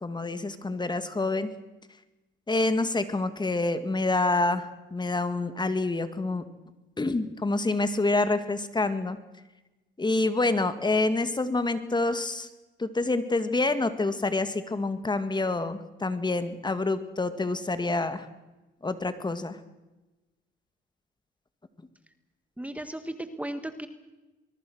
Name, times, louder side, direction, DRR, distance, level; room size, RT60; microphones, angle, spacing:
voice 1, 0.0-1.5 2.5-6.4 7.0-9.2 10.0-12.5 12.8-18.3 18.8-19.6, left 2 dB, 20° left, 11 dB, 2.0 m, -27 dB
voice 2, 22.6-23.9, right 1 dB, 5° right, 9 dB, 1.5 m, -35 dB
23.5 x 22.0 x 6.4 m, 1.1 s
cardioid pair, 90°, 20 cm